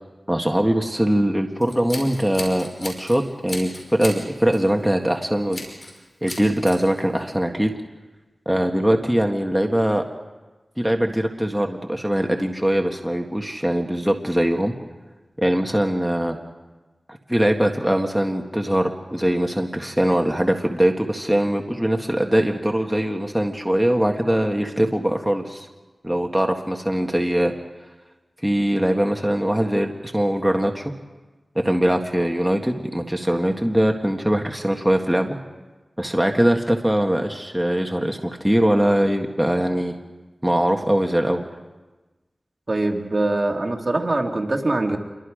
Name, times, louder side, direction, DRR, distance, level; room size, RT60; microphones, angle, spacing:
voice 1, 0.3-5.6 6.2-7.7 8.4-10.0 10.8-14.7 15.4-16.4 17.1-25.7 26.0-27.5 28.4-30.9 31.5-35.4 36.0-39.9 40.4-41.5, equal, 5° right, 3 dB, 1.7 m, -21 dB
Scissors, 1.6-3.2 3.5-4.2 4.5-4.7 5.5-6.0 6.3-6.8, left 2 dB, 60° left, 5.7 m, -35 dB
voice 2, 42.7-45.0, right 2 dB, 45° right, 2 dB, 2.3 m, -23 dB
27.5 x 23.5 x 5.1 m, 1.2 s
wide cardioid pair, 60°, 0 cm